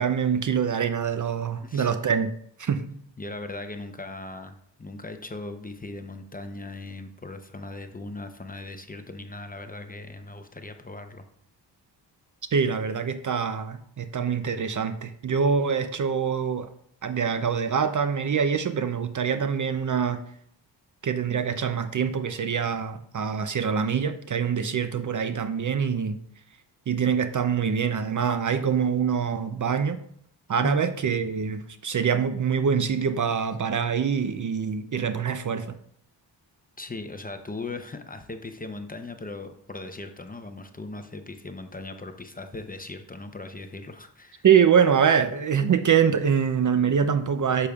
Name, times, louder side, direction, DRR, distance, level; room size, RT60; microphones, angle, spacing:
voice 1, 0.0-2.3 2.6-2.8 12.5-16.7 17.0-20.2 21.0-26.2 26.9-30.0 30.5-35.8 44.4-47.7, right 7 dB, 45° right, 10 dB, 0.5 m, -24 dB
voice 2, 1.6-1.9 3.2-11.2 30.6-30.8 36.8-44.5, left 2 dB, 20° left, 7 dB, 0.6 m, -38 dB
8.4 x 6.8 x 2.3 m, 0.67 s
cardioid pair, 85°, 44 cm